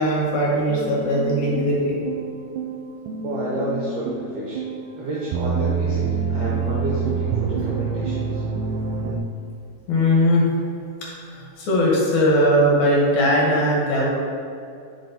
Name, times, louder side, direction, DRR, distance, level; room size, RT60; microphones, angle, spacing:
voice 1, 0.0-2.0 9.9-10.5 11.0-14.1, equal, 70° left, -4 dB, 2.5 m, -19 dB
sound 1, 0.7-9.2, right 5 dB, 80° right, 2.0 m, -27 dB
voice 2, 3.2-4.7 5.0-8.4, right 1 dB, 65° right, -6 dB, 1.7 m, -30 dB
7.4 x 5.1 x 2.8 m, 2.5 s
omnidirectional pair, 3.7 m